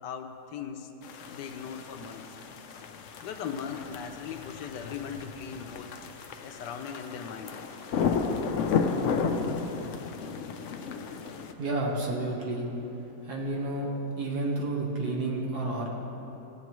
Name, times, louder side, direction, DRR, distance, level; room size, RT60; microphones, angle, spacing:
voice 1, 0.0-0.9 1.3-2.3 3.2-6.0 6.4-7.6, left 7 dB, 85° left, 6 dB, 1.3 m, -39 dB
sound 1, 1.0-11.5, left 5 dB, 70° left, 0.7 m, -33 dB
voice 2, 11.6-12.7 13.2-13.9 14.2-15.9, right 2 dB, 70° right, -1 dB, 1.8 m, -30 dB
15.5 x 7.9 x 3.1 m, 2.9 s
omnidirectional pair, 1.8 m